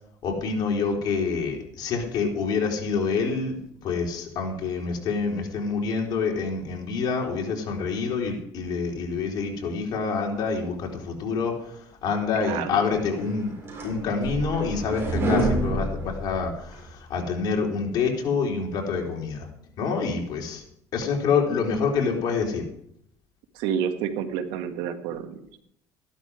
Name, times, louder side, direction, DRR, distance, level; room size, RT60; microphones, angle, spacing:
voice 1, 0.2-13.5 13.8-19.5 19.8-20.6 20.9-22.6, left 5 dB, 55° left, 0 dB, 3.9 m, -27 dB
voice 2, 12.4-12.8 23.5-25.6, right 8 dB, 80° right, 7 dB, 1.7 m, -29 dB
sound 1, 13.2-16.9, right 1 dB, 30° right, 7.0 m, -27 dB
14.0 x 12.0 x 4.9 m, 0.72 s
cardioid pair, 115°, 8 cm